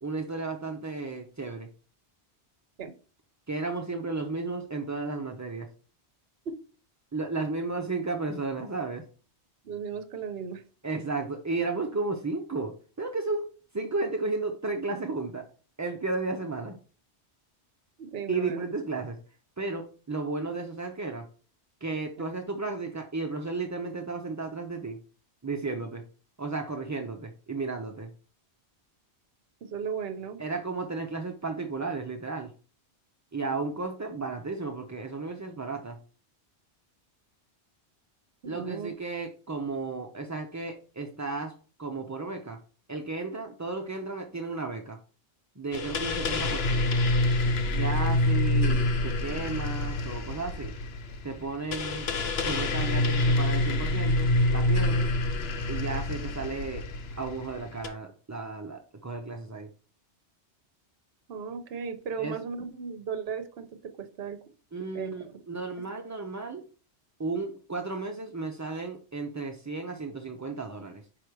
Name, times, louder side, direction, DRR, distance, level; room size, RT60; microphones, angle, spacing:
voice 1, 0.0-1.7 3.5-5.7 7.1-9.1 10.8-15.5 15.8-16.8 18.3-19.2 19.6-21.3 21.8-25.0 25.4-26.0 26.4-28.1 30.4-32.5 33.3-36.0 38.4-42.6 42.9-45.0 45.6-47.0 47.7-50.8 51.2-52.1 52.4-55.1 55.7-56.9 57.2-59.7 62.2-62.4 64.7-66.7 67.2-71.1, right 3 dB, 25° right, 2 dB, 0.4 m, -33 dB
voice 2, 9.6-10.6 18.0-18.6 29.6-30.4 38.4-38.9 61.3-64.4 64.9-65.4, right 6 dB, 65° right, 10 dB, 0.9 m, -36 dB
sound 1, 45.7-57.9, left 2 dB, 65° left, 1.0 m, -27 dB
5.2 x 4.9 x 4.6 m, 0.38 s
omnidirectional pair, 1.2 m